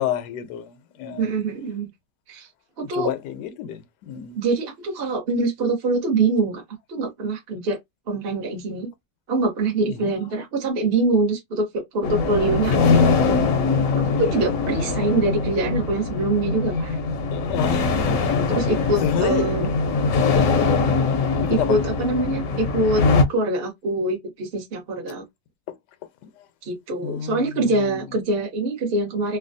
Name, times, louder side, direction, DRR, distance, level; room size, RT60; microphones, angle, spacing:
voice 1, 0.0-1.3 2.9-4.4 9.9-10.2 12.3-12.4 14.1-14.2 17.3-18.3 19.0-20.0 20.3-20.8 21.4-21.8 27.0-28.0, left 10 dB, 80° left, 1.2 m, -30 dB
voice 2, 1.2-1.9 2.3-2.5 2.8-3.1 4.4-6.6 6.9-7.8 8.1-8.9 9.3-13.4 14.2-17.0 18.5-19.7 21.5-23.0 23.3-25.2 26.6-29.4, right 2 dB, 45° right, 1.0 m, -24 dB
sound 1, 12.0-23.2, left 4 dB, 60° left, 0.9 m, -22 dB
3.2 x 2.3 x 2.6 m
omnidirectional pair, 1.8 m